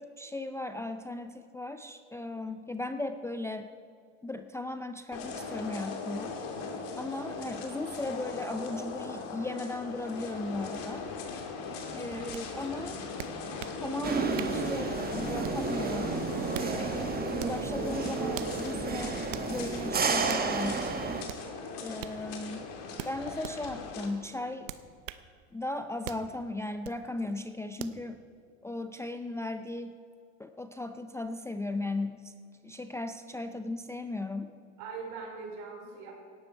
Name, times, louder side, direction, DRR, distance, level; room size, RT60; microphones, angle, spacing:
voice 1, 0.0-3.7 4.2-6.4 7.0-11.4 11.9-13.0 13.8-16.2 16.6-20.8 21.8-22.6 23.1-24.7 25.5-28.2 28.6-30.0 30.4-32.3 32.6-34.5, left 2 dB, 10° left, 8 dB, 0.4 m, -37 dB
sound 1, 5.1-24.1, left 4 dB, 60° left, 2.5 m, -39 dB
voice 2, 7.5-7.8 11.8-12.9 22.1-22.4 34.8-36.1, right 5 dB, 60° right, 0 dB, 4.4 m, -44 dB
sound 2, 12.3-12.4 13.2-13.8 14.4-14.6 15.4-15.7 16.3-16.7 17.4-17.6 18.3-18.6 19.3-19.5 20.3-20.5 21.3-21.4 22.0-22.2 23.0-23.6 24.7-25.3 26.0-26.3 26.8-27.0 27.8-28.0, right 13 dB, 85° right, 0.8 m, -41 dB
sound 3, 14.0-21.2, right 5 dB, 25° right, 1.3 m, -32 dB
17.0 x 12.0 x 4.5 m, 2.3 s
hypercardioid pair, 95°, 37 cm